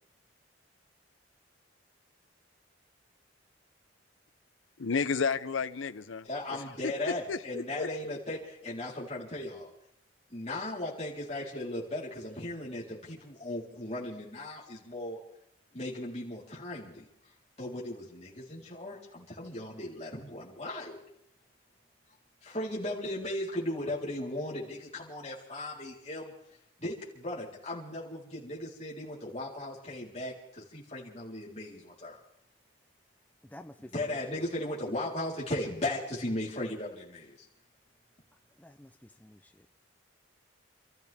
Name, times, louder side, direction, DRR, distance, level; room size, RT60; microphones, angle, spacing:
voice 1, 4.8-6.3 7.3-7.9 8.3-8.4, left 5 dB, 80° left, 12 dB, 0.7 m, -31 dB
voice 2, 6.2-9.7 10.3-15.2 15.7-17.0 17.6-21.0 22.4-26.3 26.8-32.2 33.8-37.4, left 1 dB, 35° left, -5 dB, 3.9 m, -37 dB
voice 3, 33.5-34.1 34.3-34.5 38.6-38.9 39.2-39.4, left 1 dB, 10° left, 7 dB, 0.5 m, -49 dB
29.0 x 14.0 x 3.6 m, 0.77 s
head